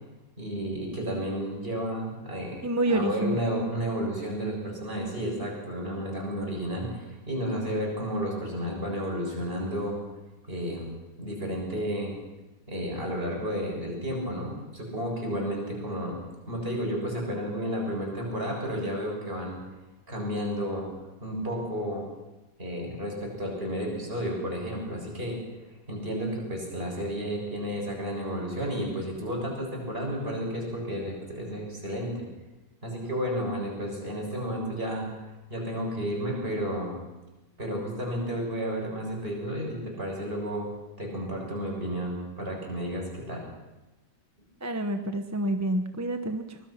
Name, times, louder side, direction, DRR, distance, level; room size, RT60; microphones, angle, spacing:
voice 1, 0.4-2.6 2.9-10.0 10.5-10.9 11.2-12.1 12.7-16.2 16.5-19.6 20.1-20.9 21.2-22.0 22.6-25.4 25.9-32.3 32.8-35.1 35.5-36.9 37.6-40.7 41.0-43.4, equal, 30° right, -1 dB, 7.2 m, -32 dB
voice 2, 2.6-3.4 44.6-46.6, right 1 dB, 15° right, 6 dB, 0.7 m, -28 dB
24.0 x 20.5 x 5.9 m, 1.1 s
omnidirectional pair, 1.8 m